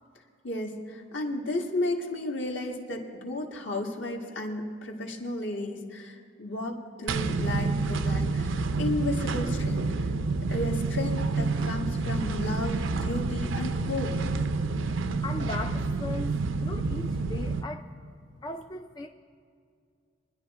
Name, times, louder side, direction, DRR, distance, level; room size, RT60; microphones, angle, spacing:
voice 1, 0.4-10.1 10.5-14.1, left 2 dB, 60° left, 1 dB, 1.7 m, -33 dB
sound 1, 7.1-17.6, right 3 dB, 70° right, 0.5 m, -28 dB
voice 2, 15.2-17.8 18.4-19.1, left 2 dB, 20° left, 4 dB, 0.3 m, -37 dB
25.0 x 10.5 x 3.6 m, 2.3 s
head